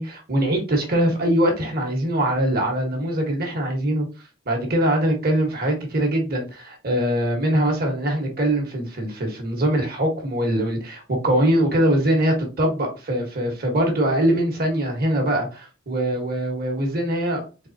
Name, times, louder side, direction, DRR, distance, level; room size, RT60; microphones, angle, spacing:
voice 1, 0.0-4.1 4.4-17.4, right 1 dB, 50° right, 2 dB, 1.4 m, -22 dB
4.0 x 3.3 x 2.8 m, 0.32 s
head